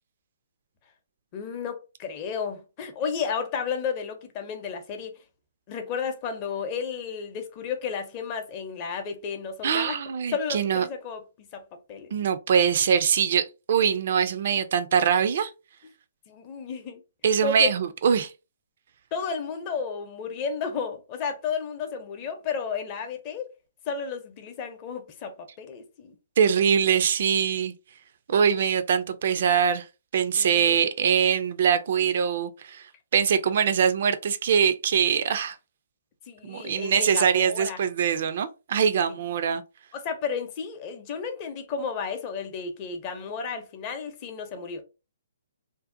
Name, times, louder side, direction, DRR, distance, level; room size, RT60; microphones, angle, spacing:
voice 1, 1.3-5.2 5.7-10.0 10.3-11.6 11.9-12.1 16.3-17.0 17.4-17.8 19.1-23.5 23.9-26.1 30.4-30.8 36.3-37.8 39.9-44.8, left 6 dB, 35° left, 0.5 m, -32 dB
voice 2, 9.6-10.8 12.1-15.5 17.2-18.3 26.4-27.7 28.3-29.9 30.1-32.9 33.1-35.6 36.4-39.6, right 7 dB, 55° right, 0.3 m, -23 dB
2.6 x 2.0 x 2.5 m
hypercardioid pair, 135°, 0 cm